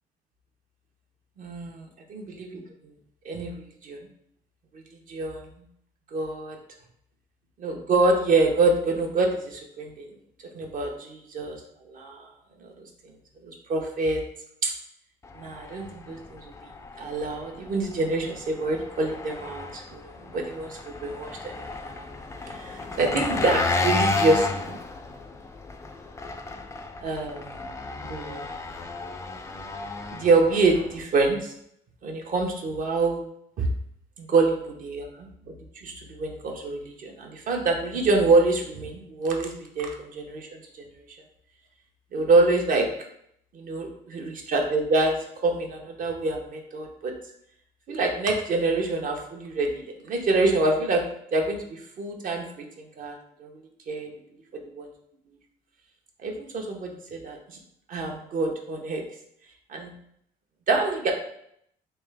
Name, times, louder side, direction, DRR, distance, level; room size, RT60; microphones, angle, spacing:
voice 1, 1.4-1.7 2.3-2.6 3.2-3.5 3.8-4.0 5.1-5.4 6.1-6.6 7.6-10.1 10.5-11.6 11.9-12.3 12.6-12.7 13.4-14.2 14.6-14.7 15.4-16.5 17.0-22.1 22.5-24.8 27.0-27.6 28.1-28.4 30.1-31.5 32.0-33.3 33.6-33.7 34.2-35.3 35.8-40.5 42.1-42.9 43.5-45.1 45.4-47.1 47.9-51.0 51.3-52.4 52.8-53.6 53.9-54.1 54.7-54.9 56.2-57.6 57.9-59.0 59.7-59.9 60.7-61.1, right 3 dB, 50° right, 2 dB, 0.9 m, -26 dB
Engine, 15.2-31.0, left 3 dB, 15° left, 0.4 m, -32 dB
3.5 x 3.2 x 3.4 m, 0.71 s
cardioid pair, 110°, 17 cm